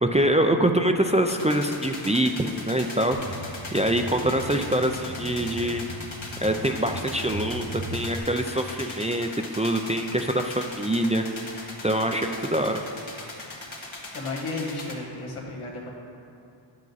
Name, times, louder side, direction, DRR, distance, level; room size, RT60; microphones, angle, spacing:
voice 1, 0.0-3.4 3.7-5.8 6.4-9.3 9.6-11.2 11.8-12.9, right 1 dB, 15° right, 4 dB, 0.4 m, -24 dB
sound 1, 1.3-14.9, left 2 dB, 65° left, 1.6 m, -40 dB
sound 2, 3.1-8.2, equal, 50° right, 1.2 m, -38 dB
voice 2, 14.1-15.9, left 2 dB, 85° left, -3 dB, 1.7 m, -33 dB
10.5 x 7.5 x 4.0 m, 2.7 s
wide cardioid pair, 70°, 50 cm